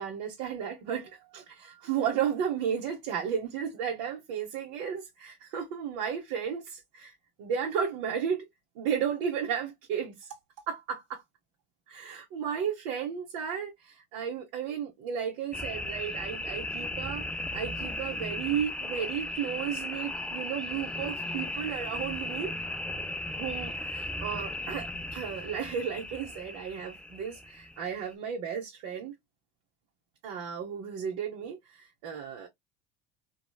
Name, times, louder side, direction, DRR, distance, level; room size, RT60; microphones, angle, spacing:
voice 1, 0.0-8.5 8.8-10.3 10.7-11.2 11.9-22.5 23.3-29.1 30.2-32.5, right 8 dB, 70° right, 0.9 m, -34 dB
sound 1, 15.5-28.1, left 1 dB, 5° left, 0.3 m, -36 dB
3.2 x 2.3 x 2.2 m
hypercardioid pair, 80°, 31 cm